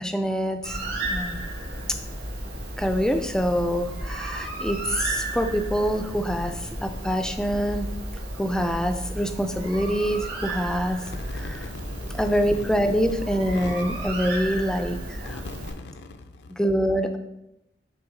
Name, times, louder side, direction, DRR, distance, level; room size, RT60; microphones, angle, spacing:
voice 1, 0.0-1.4 2.8-7.9 8.4-11.0 11.3-11.7 12.1-15.4 16.5-17.2, equal, 5° left, 6 dB, 0.3 m, -25 dB
Bird, 0.6-15.7, right 1 dB, 60° right, 1.7 m, -33 dB
voice 2, 11.1-12.7 13.5-13.7 15.2-16.5, left 3 dB, 70° left, 7 dB, 0.5 m, -40 dB
8.9 x 3.4 x 3.8 m, 0.90 s
head